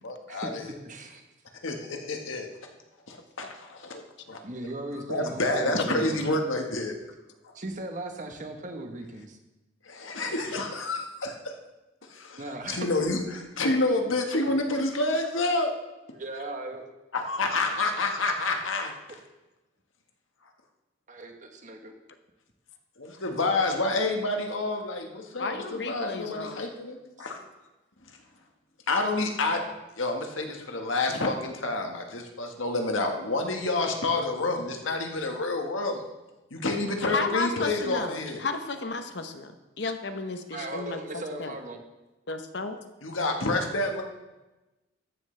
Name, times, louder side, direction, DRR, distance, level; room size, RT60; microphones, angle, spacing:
voice 1, 0.0-0.7 1.6-2.5 3.1-3.9 4.3-4.4 4.9-6.9 9.9-11.0 12.1-15.7 17.1-19.2 23.0-27.4 28.9-29.6 30.0-36.0 36.5-38.4 43.0-44.0, left 2 dB, 85° left, 3 dB, 1.5 m, -28 dB
voice 2, 0.8-1.2 4.4-6.2 7.5-9.4 12.4-12.9 16.1-16.9 21.1-21.9 40.5-41.8, right 2 dB, 40° right, 5 dB, 1.2 m, -37 dB
voice 3, 25.4-26.6 37.1-39.5 39.8-41.6 42.3-42.8, left 3 dB, 60° left, 8 dB, 0.9 m, -33 dB
13.5 x 10.0 x 3.3 m, 1.1 s
head